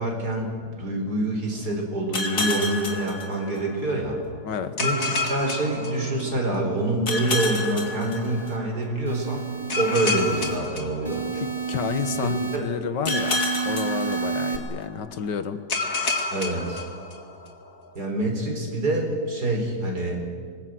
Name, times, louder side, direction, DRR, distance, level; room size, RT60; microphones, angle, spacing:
voice 1, 0.0-4.2 4.8-9.4 9.8-11.3 12.2-12.7 16.3-16.8 17.9-20.2, right 2 dB, 60° right, 1 dB, 4.9 m, -26 dB
sound 1, 2.1-3.9 4.8-6.5 7.1-8.8 9.7-11.7 13.0-14.8 15.7-17.5, left 3 dB, 50° left, 2.6 m, -29 dB
sound 2, 7.5-8.6 9.1-10.6 11.1-12.6 13.1-14.6, right 5 dB, 25° right, 2.2 m, -31 dB
voice 2, 11.3-15.6, left 7 dB, 75° left, 11 dB, 1.9 m, -30 dB
26.0 x 21.0 x 7.7 m, 2.1 s
omnidirectional pair, 1.9 m